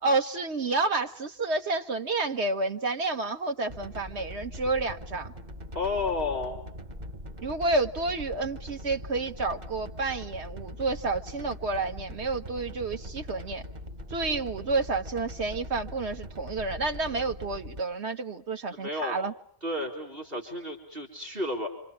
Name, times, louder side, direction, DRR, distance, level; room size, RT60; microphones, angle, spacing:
voice 1, 0.0-5.3 7.4-13.6 14.1-19.3, right 3 dB, 80° right, 1.7 m, -30 dB
sound 1, 3.7-17.8, equal, 40° right, 1.4 m, -42 dB
voice 2, 5.7-6.6 18.7-19.1 19.6-21.7, left 2 dB, 60° right, 4.5 m, -32 dB
28.0 x 26.5 x 7.4 m
omnidirectional pair, 1.1 m